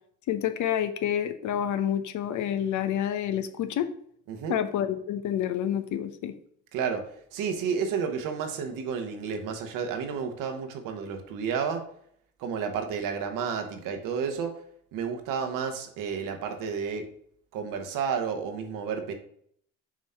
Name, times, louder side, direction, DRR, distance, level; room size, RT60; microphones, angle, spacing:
voice 1, 0.3-3.9 4.5-6.3, left 10 dB, 60° left, 11 dB, 0.8 m, -28 dB
voice 2, 4.3-4.6 6.7-11.8 12.4-14.5 14.9-17.1 17.5-19.1, right 6 dB, 70° right, 5 dB, 1.2 m, -31 dB
6.1 x 3.1 x 5.5 m, 0.65 s
supercardioid pair, 65°, 33 cm